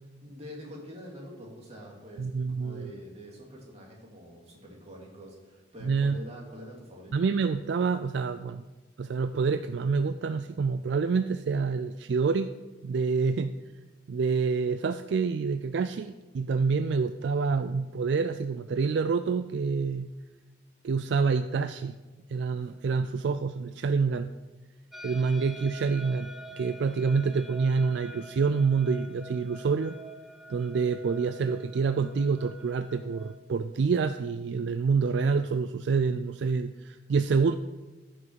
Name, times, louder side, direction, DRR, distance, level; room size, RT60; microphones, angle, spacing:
voice 1, 0.2-7.1, equal, 35° right, -2 dB, 2.5 m, -45 dB
voice 2, 2.2-2.9 5.8-6.2 7.1-8.6 9.0-12.5 12.8-13.6 14.1-20.1 20.8-22.0 22.3-24.3 25.0-30.0 30.5-37.6, right 5 dB, 65° right, 11 dB, 0.3 m, -27 dB
sound 1, 24.9-33.4, right 2 dB, ahead, 0.5 m, -47 dB
14.5 x 6.1 x 4.7 m, 1.2 s
head